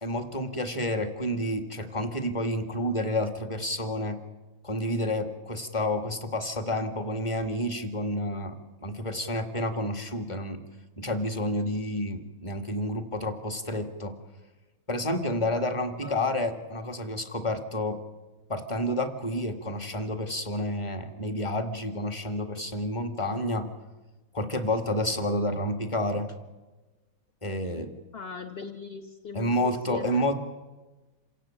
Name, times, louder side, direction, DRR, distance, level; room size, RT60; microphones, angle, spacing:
voice 1, 0.0-4.2 4.6-10.6 11.0-14.1 14.9-18.0 18.5-23.7 24.3-26.3 27.4-27.9 29.3-30.3, left 1 dB, 20° left, 6 dB, 1.8 m, -29 dB
voice 2, 28.1-30.3, left 5 dB, 40° left, 4 dB, 1.1 m, -40 dB
27.5 x 17.0 x 8.9 m, 1.2 s
omnidirectional pair, 1.9 m